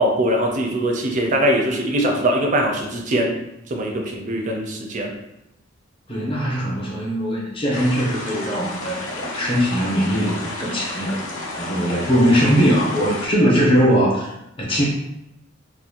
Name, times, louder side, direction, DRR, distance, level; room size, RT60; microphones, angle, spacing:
voice 1, 0.0-3.3 3.7-5.1, right 1 dB, 40° right, 2 dB, 0.4 m, -21 dB
voice 2, 6.1-11.2 11.5-14.8, equal, 25° left, -4 dB, 0.7 m, -20 dB
sound 1, 7.7-13.3, left 2 dB, 65° left, 0.5 m, -31 dB
2.5 x 2.1 x 2.8 m, 0.85 s
head